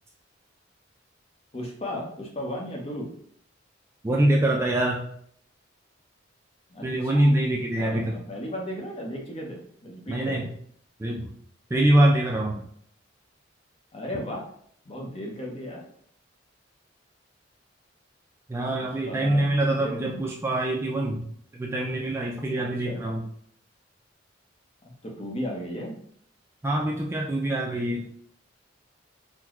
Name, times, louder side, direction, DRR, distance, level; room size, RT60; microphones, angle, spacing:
voice 1, 1.5-3.1 6.7-7.3 7.7-10.5 13.9-14.4 14.8-15.9 18.8-20.2 22.6-23.0 25.0-26.0, equal, 35° left, 0 dB, 0.7 m, -35 dB
voice 2, 4.0-5.1 6.8-8.2 10.1-10.5 11.0-11.3 11.7-12.6 18.5-21.3 21.5-23.2 26.6-28.1, right 1 dB, 15° right, -1 dB, 0.3 m, -24 dB
3.9 x 2.1 x 3.0 m, 0.64 s
head